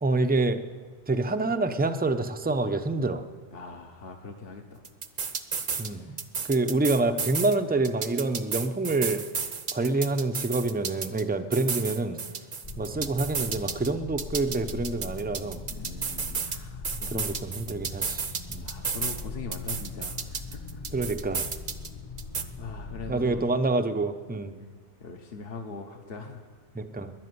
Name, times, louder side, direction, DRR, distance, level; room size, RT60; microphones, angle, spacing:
voice 1, 0.0-0.6 1.1-3.2 5.8-6.2 6.5-9.2 9.7-12.2 12.8-15.6 16.9-18.7 20.9-21.5 23.1-24.6 26.7-27.1, right 3 dB, 10° right, 8 dB, 0.5 m, -27 dB
voice 2, 3.5-4.8 5.9-6.2 15.7-17.4 18.6-20.8 22.6-23.5 24.5-24.7 25.0-26.4, left 4 dB, 60° left, 3 dB, 1.2 m, -41 dB
sound 1, 4.8-5.9 6.2-7.6 7.8-11.2 11.5-13.9 14.2-16.6 16.8-19.2 19.5-21.9 22.2-22.4, right 5 dB, 50° right, 1.0 m, -32 dB
sound 2, 12.6-23.4, left 3 dB, 35° left, 1.0 m, -40 dB
13.5 x 10.5 x 9.5 m, 1.5 s
omnidirectional pair, 1.2 m